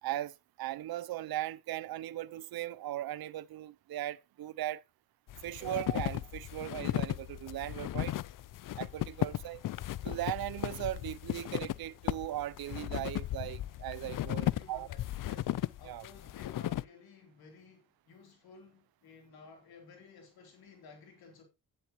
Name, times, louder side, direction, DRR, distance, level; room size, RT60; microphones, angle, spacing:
voice 1, 0.0-4.8 5.4-8.2 8.8-9.7 10.0-14.9 15.9-16.1, right 14 dB, 80° right, 0.6 m, -38 dB
sound 1, 5.3-16.8, left 13 dB, 60° left, 0.5 m, -36 dB
voice 2, 14.2-21.4, left 4 dB, 85° left, 3.6 m, -55 dB
11.0 x 10.0 x 3.0 m
cardioid pair, 60°, 36 cm